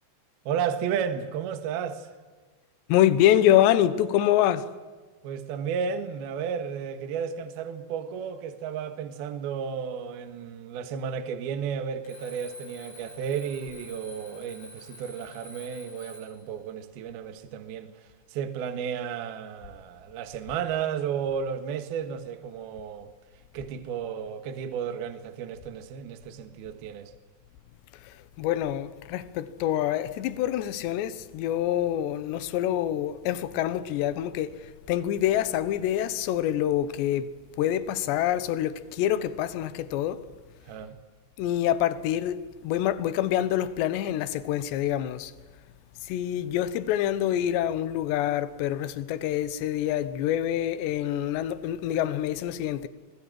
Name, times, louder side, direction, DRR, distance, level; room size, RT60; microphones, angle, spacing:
voice 1, 0.5-2.1 5.2-17.9 18.3-23.1 23.5-27.1 40.7-41.0, right 7 dB, 65° right, 3.1 m, -33 dB
voice 2, 2.9-4.7 28.0-37.3 37.6-40.2 41.4-45.3 46.0-52.9, left 11 dB, 75° left, 3.1 m, -26 dB
Alarm, 12.0-16.5, left 1 dB, 90° left, 9.9 m, -48 dB
26.5 x 20.5 x 7.6 m
omnidirectional pair, 5.4 m